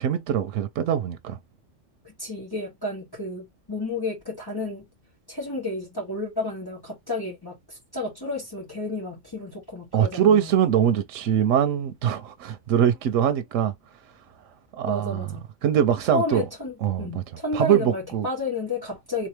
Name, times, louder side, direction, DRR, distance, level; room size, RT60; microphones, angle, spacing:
voice 1, 0.0-1.4 9.9-13.7 14.8-15.3 15.6-16.5 16.8-17.2 17.5-18.3, right 9 dB, 90° right, 1.0 m, -22 dB
voice 2, 2.0-4.8 5.3-10.5 14.9-15.4 16.1-19.3, left 2 dB, 20° left, 1.9 m, -31 dB
3.5 x 3.0 x 3.3 m
omnidirectional pair, 1.3 m